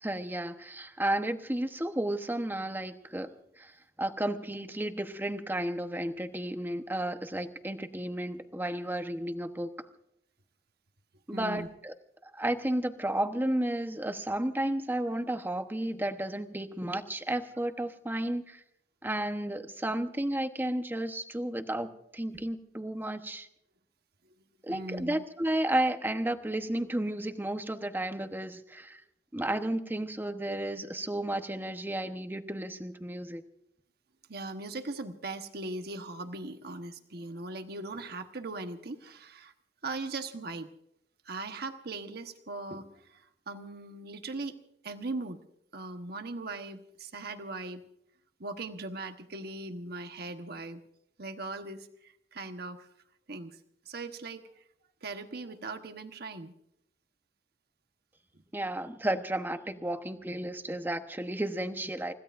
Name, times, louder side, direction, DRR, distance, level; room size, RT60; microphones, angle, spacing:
voice 1, 0.0-3.3 3.6-3.7 4.0-9.7 11.3-11.9 12.2-18.6 19.0-23.5 24.6-29.0 29.3-33.4 58.5-62.1, right 1 dB, 10° right, 7 dB, 1.0 m, -32 dB
voice 2, 11.3-11.7 24.7-25.2 34.3-39.5 39.8-40.7 41.2-44.5 44.8-45.4 45.7-47.8 48.4-50.8 51.2-52.9 53.3-53.6 53.8-54.6 55.0-56.5, right 2 dB, 60° right, 7 dB, 1.2 m, -39 dB
30.0 x 16.0 x 2.6 m, 0.76 s
head